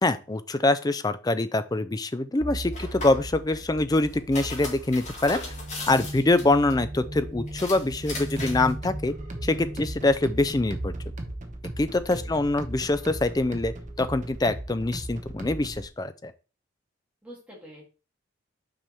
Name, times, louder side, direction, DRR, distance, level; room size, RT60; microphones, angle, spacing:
voice 1, 0.0-5.4 5.9-9.1 9.4-10.9 11.8-16.3, left 2 dB, 20° left, 12 dB, 0.4 m, -24 dB
sound 1, 2.4-11.3, right 1 dB, 60° right, 3.1 m, -37 dB
sound 2, 2.7-3.3 4.1-6.7 7.5-8.7, left 3 dB, 35° left, 2.1 m, -38 dB
sound 3, 8.4-15.9, right 1 dB, 35° right, 0.9 m, -38 dB
voice 2, 12.1-12.5 17.2-17.9, equal, 5° right, -4 dB, 2.7 m, -46 dB
6.2 x 4.9 x 4.2 m, 0.33 s
head